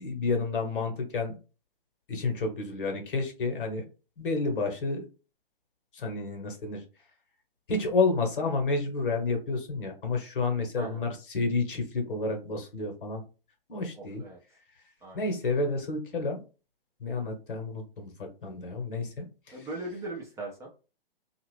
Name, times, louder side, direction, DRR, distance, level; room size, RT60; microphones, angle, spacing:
voice 1, 0.0-1.4 2.1-3.8 4.2-5.1 5.9-6.8 7.7-13.2 13.7-14.2 15.1-16.4 17.0-19.6, left 3 dB, 60° left, 4 dB, 1.3 m, -30 dB
voice 2, 14.0-14.4 15.0-15.3 19.5-20.7, right 2 dB, 10° right, -3 dB, 0.6 m, -39 dB
2.7 x 2.5 x 3.2 m, 0.33 s
figure-of-eight pair, 125°, 30 cm